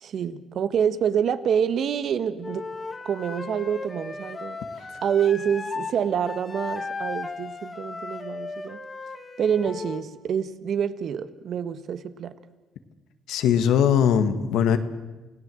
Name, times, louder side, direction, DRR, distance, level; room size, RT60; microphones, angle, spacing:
voice 1, 0.0-2.7 3.0-4.6 5.0-8.8 9.4-12.3, right 8 dB, 65° right, 13 dB, 1.5 m, -27 dB
Wind instrument woodwind instrument, 2.4-6.0 6.2-10.1, left 3 dB, 30° left, 2.3 m, -36 dB
voice 2, 13.3-14.8, left 8 dB, 85° left, 10 dB, 1.7 m, -20 dB
29.0 x 17.0 x 7.8 m, 1.1 s
cardioid pair, 90°, 0 cm